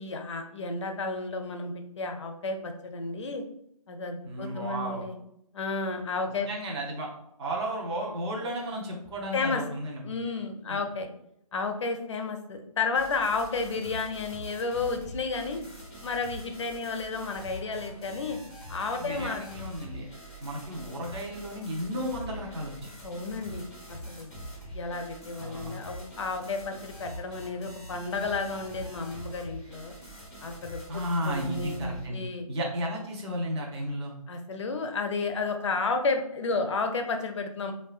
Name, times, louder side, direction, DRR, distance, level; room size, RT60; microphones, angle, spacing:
voice 1, 0.0-3.4 3.9-5.1 5.5-6.5 9.3-9.6 10.0-11.1 11.5-15.6 16.0-18.4 18.7-19.7 23.0-24.3 24.7-30.0 30.4-32.5 34.3-37.7, left 4 dB, 50° left, 5 dB, 0.4 m, -32 dB
voice 2, 4.2-5.0 6.5-7.1 7.4-10.2 10.7-10.8 19.0-20.1 20.4-22.9 25.4-25.7 30.9-32.2 32.5-34.1, equal, 45° right, -1 dB, 0.6 m, -33 dB
sound 1, 12.9-32.1, equal, 5° right, 0.6 m, -44 dB
3.6 x 2.1 x 2.3 m, 0.76 s
hypercardioid pair, 165°, 19 cm